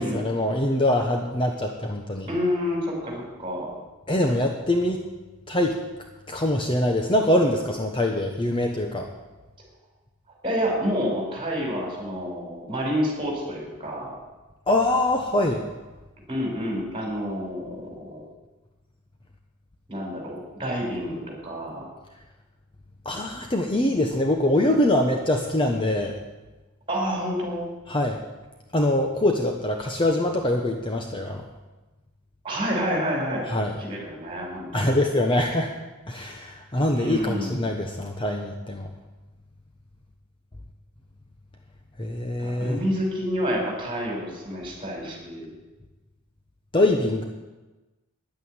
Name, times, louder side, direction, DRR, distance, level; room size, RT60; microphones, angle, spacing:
voice 1, 0.0-2.3 4.1-5.0 5.5-5.8 6.3-9.1 14.7-15.6 23.0-26.1 27.9-28.2 28.7-31.4 33.5-33.7 34.7-35.7 36.1-38.9 42.0-42.8 46.7-47.2, left 1 dB, 25° left, 2 dB, 1.0 m, -23 dB
voice 2, 2.3-3.7 10.4-14.2 16.3-18.3 19.9-21.9 26.9-27.6 32.4-33.5 33.8-34.9 36.9-37.5 42.4-45.5, equal, 25° right, -1 dB, 4.9 m, -28 dB
10.5 x 9.1 x 9.6 m, 1.2 s
head